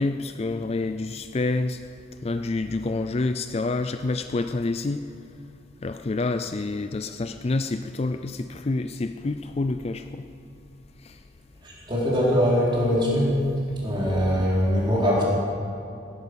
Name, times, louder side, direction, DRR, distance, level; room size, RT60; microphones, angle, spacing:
voice 1, 0.0-1.8 2.2-5.0 5.8-10.3 11.0-11.2, left 3 dB, 30° left, 8 dB, 0.4 m, -28 dB
voice 2, 11.6-13.4 13.8-15.2, equal, 25° right, -6 dB, 4.0 m, -22 dB
17.5 x 10.5 x 6.3 m, 2.6 s
head